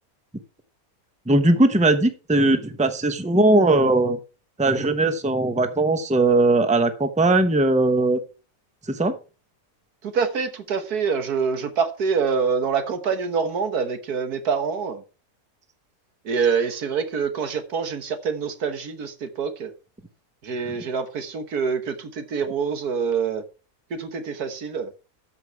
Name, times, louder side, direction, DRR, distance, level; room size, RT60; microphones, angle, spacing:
voice 1, 1.3-4.2 4.6-8.2 8.9-9.1, right 2 dB, 5° right, 9 dB, 0.8 m, -19 dB
voice 2, 10.0-15.0 16.3-19.7 20.4-23.4 23.9-24.9, right 6 dB, 85° right, 9 dB, 1.9 m, -25 dB
13.5 x 5.7 x 4.7 m, 0.33 s
omnidirectional pair, 1.6 m